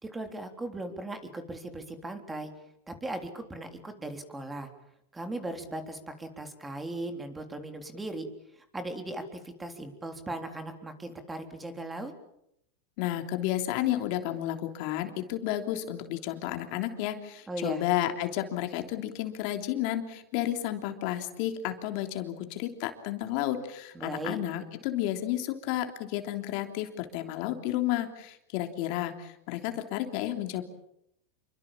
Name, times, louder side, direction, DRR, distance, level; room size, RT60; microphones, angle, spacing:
voice 1, 0.0-2.5 2.9-4.7 5.1-8.3 8.7-12.1 17.5-17.8 23.9-24.4, right 2 dB, 10° right, 7 dB, 3.7 m, -38 dB
voice 2, 13.0-30.6, left 13 dB, 55° left, 6 dB, 3.2 m, -32 dB
27.5 x 24.0 x 7.4 m, 0.79 s
supercardioid pair, 130°, 0 cm